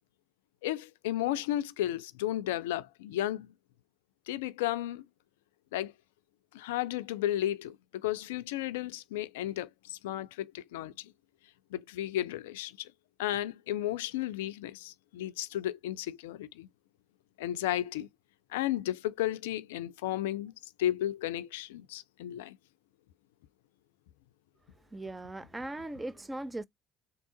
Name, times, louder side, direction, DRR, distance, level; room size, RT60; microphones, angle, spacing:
voice 1, 0.6-3.5 4.3-5.0 5.7-5.9 6.5-11.1 11.7-12.9 13.2-16.7 17.4-18.1 18.5-20.5 20.8-22.6, left 13 dB, 75° left, 0.3 m, -33 dB
voice 2, 24.7-26.6, right 2 dB, 15° right, 0.4 m, -39 dB
3.6 x 2.8 x 3.8 m
figure-of-eight pair, 60°, 0 cm